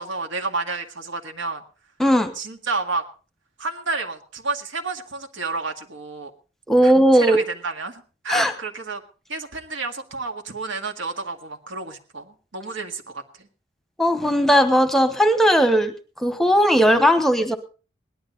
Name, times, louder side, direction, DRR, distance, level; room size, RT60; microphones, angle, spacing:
voice 1, 0.0-1.6 2.4-3.0 3.6-6.3 6.8-9.0 9.3-13.2, right 3 dB, 85° right, 4 dB, 1.9 m, -30 dB
voice 2, 2.0-2.3 6.7-7.4 8.3-8.5 14.0-15.9 16.2-17.6, equal, ahead, 8 dB, 1.0 m, -17 dB
18.0 x 11.5 x 3.9 m, 0.37 s
head